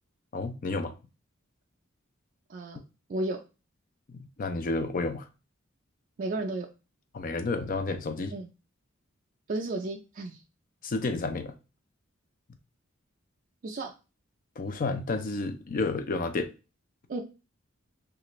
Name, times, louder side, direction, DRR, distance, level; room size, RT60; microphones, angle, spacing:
voice 1, 0.3-0.9 4.4-5.3 7.1-8.3 10.8-11.5 14.6-16.5, left 3 dB, 40° left, 0.4 m, -30 dB
voice 2, 6.2-6.7 8.3-8.5 9.5-10.4 13.6-13.9 17.1-17.2, right 2 dB, 45° right, 0.4 m, -33 dB
3.2 x 2.4 x 2.9 m
head